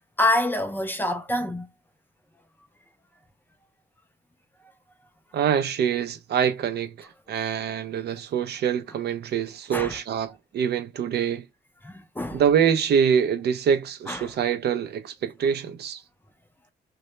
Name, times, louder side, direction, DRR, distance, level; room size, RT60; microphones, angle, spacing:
voice 1, 0.2-1.7 9.7-10.0 11.8-12.4 14.1-14.3, left 1 dB, 10° left, 0.4 m, -26 dB
voice 2, 5.3-11.4 12.3-16.0, right 8 dB, 55° right, 0.4 m, -25 dB
2.1 x 2.0 x 2.9 m
cardioid pair, 90°, 20 cm